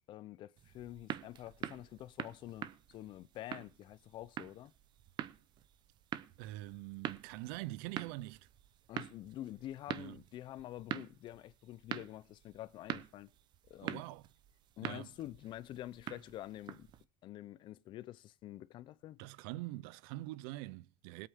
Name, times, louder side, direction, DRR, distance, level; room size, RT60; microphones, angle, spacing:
voice 1, 0.1-4.7 8.9-13.3 13.7-14.0 14.8-16.9 17.2-19.2, left 14 dB, 40° left, 0.6 m, -47 dB
sound 1, 0.6-17.0, right 11 dB, 35° right, 0.8 m, -46 dB
voice 2, 6.4-8.5 9.9-10.2 13.8-14.2 14.8-15.1 19.2-21.3, right 18 dB, 70° right, 0.6 m, -44 dB
20.0 x 8.7 x 3.6 m
cardioid pair, 150°, 12 cm